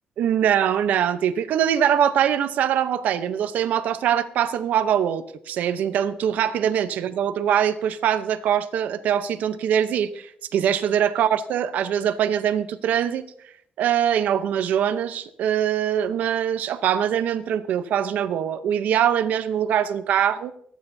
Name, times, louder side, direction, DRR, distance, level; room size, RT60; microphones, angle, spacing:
voice 1, 0.2-13.3 13.8-20.5, right 9 dB, 80° right, 11 dB, 0.8 m, -23 dB
25.5 x 9.2 x 2.7 m, 0.67 s
cardioid pair, 100°, 3 cm